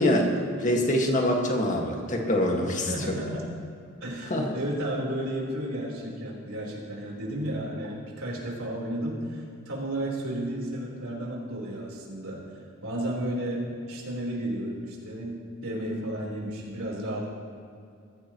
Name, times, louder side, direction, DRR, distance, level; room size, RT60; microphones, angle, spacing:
voice 1, 0.0-3.4 4.3-4.5, left 1 dB, 35° left, 0 dB, 2.0 m, -25 dB
voice 2, 2.6-3.5 4.0-12.4 12.8-17.3, right 1 dB, 75° right, -3 dB, 4.2 m, -33 dB
21.5 x 15.0 x 3.1 m, 2.4 s
head